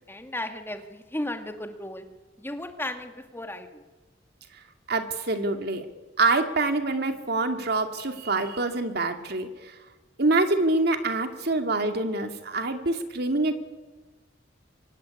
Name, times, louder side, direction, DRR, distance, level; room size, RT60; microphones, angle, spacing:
voice 1, 0.1-2.1 2.4-3.8, left 1 dB, 15° left, 6 dB, 2.1 m, -35 dB
voice 2, 4.9-5.8 6.2-9.7 10.2-13.5, right 2 dB, 60° right, 6 dB, 2.5 m, -25 dB
24.5 x 21.5 x 9.8 m, 1.2 s
head